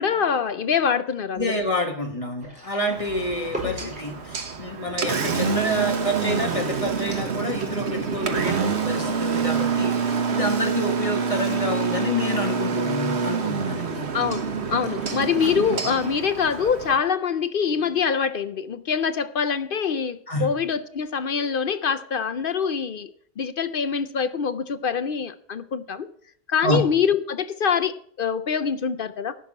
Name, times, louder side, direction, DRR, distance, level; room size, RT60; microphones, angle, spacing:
voice 1, 0.0-1.5 3.6-3.7 14.1-14.4 14.7-23.1 23.4-26.1 26.5-29.3, left 6 dB, 55° left, 0.7 m, -24 dB
voice 2, 1.3-14.0 20.3-20.5 26.6-26.9, left 1 dB, 30° left, 1.6 m, -28 dB
sound 1, 2.4-6.7 7.1-11.2 11.4-11.7 12.3-13.3 14.2-14.4 14.7-16.6, equal, 5° right, 4.5 m, -42 dB
Engine, 2.9-17.0, right 5 dB, 60° right, 1.4 m, -27 dB
11.5 x 5.9 x 8.6 m
omnidirectional pair, 1.3 m